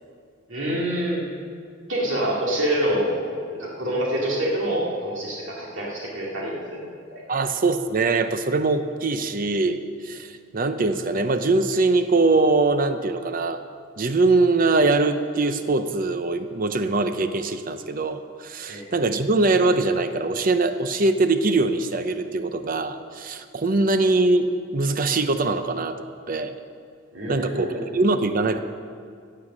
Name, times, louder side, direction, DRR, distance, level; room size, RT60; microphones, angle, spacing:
voice 1, 0.5-1.2 1.9-3.2 3.5-7.2 18.7-18.8 27.1-27.9, right 1 dB, 75° right, -4 dB, 2.4 m, -26 dB
voice 2, 7.3-13.6 14.0-26.5 27.3-28.6, right 3 dB, 45° right, 10 dB, 0.7 m, -22 dB
17.0 x 6.7 x 6.2 m, 2.2 s
head